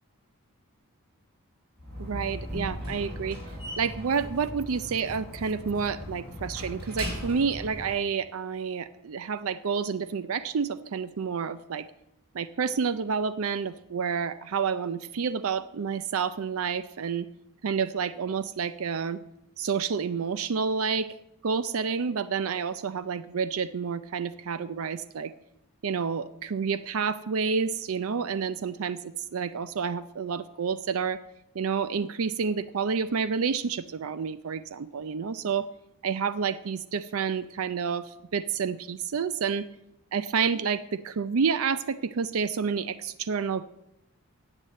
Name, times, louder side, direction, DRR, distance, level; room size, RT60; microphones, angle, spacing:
Slam, 1.8-8.0, equal, 45° right, 5.0 m, -38 dB
voice 1, 2.0-3.4 3.8-11.9 12.3-17.3 17.6-19.2 19.6-21.1 21.4-25.3 25.8-31.2 31.5-35.7 36.0-39.7 40.1-43.6, right 6 dB, 70° right, 14 dB, 0.5 m, -29 dB
10.5 x 8.1 x 7.5 m, 0.85 s
head